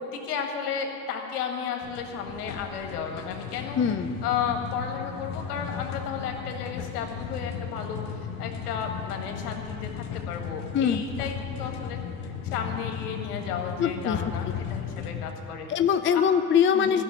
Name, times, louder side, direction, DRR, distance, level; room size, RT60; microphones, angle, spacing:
voice 1, 0.0-3.8 4.2-15.7 16.1-16.2 16.7-17.0, left 7 dB, 80° left, 3 dB, 1.8 m, -33 dB
sound 1, 1.8-15.3, left 7 dB, 60° left, 1.1 m, -36 dB
voice 2, 3.7-4.1 10.7-11.0 13.8-14.2 14.5-14.6 15.7-17.0, left 7 dB, 25° left, 10 dB, 0.6 m, -23 dB
13.5 x 6.6 x 10.0 m, 2.9 s
hypercardioid pair, 75°, 45 cm